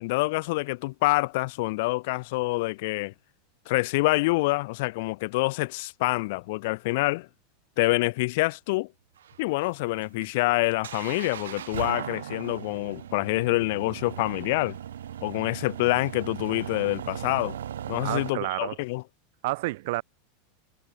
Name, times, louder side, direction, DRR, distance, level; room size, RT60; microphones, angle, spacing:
voice 1, 0.0-3.1 3.7-7.3 7.8-8.9 9.4-14.8 15.2-17.6 17.9-19.0, left 23 dB, 65° left, 0.3 m, -26 dB
sound 1, 9.2-18.3, right 10 dB, 85° right, 0.9 m, -38 dB
voice 2, 18.0-18.8 19.4-20.0, right 21 dB, 65° right, 0.3 m, -29 dB
hypercardioid pair, 105°, 0 cm